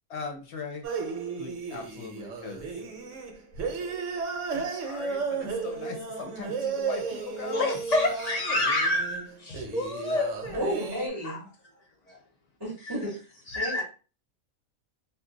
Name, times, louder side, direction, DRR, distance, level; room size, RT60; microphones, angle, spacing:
voice 1, 0.1-0.8 1.4-2.7 4.5-7.7 9.5-9.6, left 5 dB, 60° left, 3 dB, 0.8 m, -39 dB
sound 1, 0.8-11.1, right 5 dB, 65° right, 1.0 m, -34 dB
voice 2, 7.5-10.6 11.2-11.4 12.1-12.2 12.8-12.9 13.5-13.8, left 1 dB, 85° left, 0 dB, 0.3 m, -28 dB
voice 3, 10.5-11.5 12.6-13.2 13.5-13.8, equal, 20° right, -2 dB, 0.7 m, -32 dB
2.6 x 2.2 x 3.7 m, 0.35 s
omnidirectional pair, 1.4 m